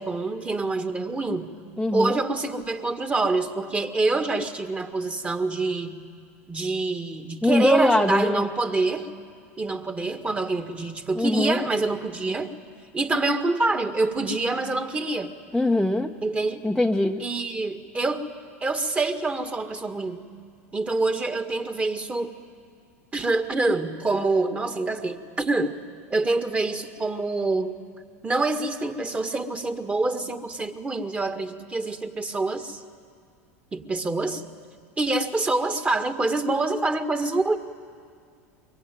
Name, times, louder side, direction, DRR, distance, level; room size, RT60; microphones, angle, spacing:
voice 1, 0.0-1.5 1.9-6.0 6.5-9.1 9.6-12.5 12.9-15.3 16.2-16.6 17.2-18.3 18.6-20.2 20.7-22.3 23.1-25.7 26.1-27.8 28.2-32.8 33.7-34.4 35.0-37.6, right 3 dB, 15° right, 7 dB, 1.8 m, -26 dB
voice 2, 1.8-2.2 7.4-8.4 11.2-11.6 15.5-16.1 16.6-17.2, left 1 dB, ahead, 1 dB, 1.0 m, -22 dB
23.0 x 23.0 x 9.2 m, 2.2 s
hypercardioid pair, 90°, 8 cm